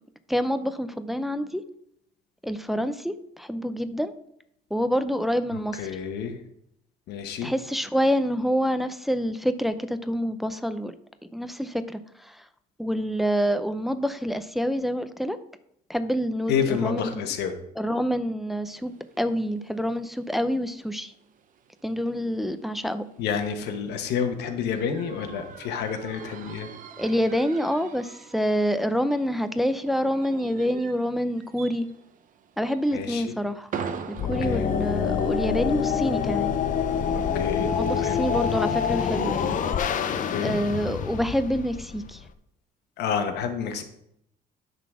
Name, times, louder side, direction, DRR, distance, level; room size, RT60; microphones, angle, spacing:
voice 1, 0.3-1.6 2.4-4.1 4.7-5.8 7.4-10.9 11.3-12.4 12.8-15.4 15.9-17.2 17.8-21.1 21.8-23.0 27.0-31.9 32.6-33.7 34.1-36.5 37.8-39.5 40.4-42.2, equal, ahead, 10 dB, 0.5 m, -27 dB
voice 2, 5.5-6.4 7.1-7.5 16.5-17.5 23.2-26.7 32.9-33.3 34.2-34.7 37.1-38.2 40.1-40.6 43.0-43.8, left 7 dB, 80° left, 5 dB, 1.2 m, -29 dB
sound 1, 18.7-35.8, right 6 dB, 50° right, 0.8 m, -44 dB
sound 2, 34.2-42.3, left 7 dB, 50° left, 0.7 m, -26 dB
9.3 x 4.0 x 6.0 m, 0.76 s
cardioid pair, 110°, 17 cm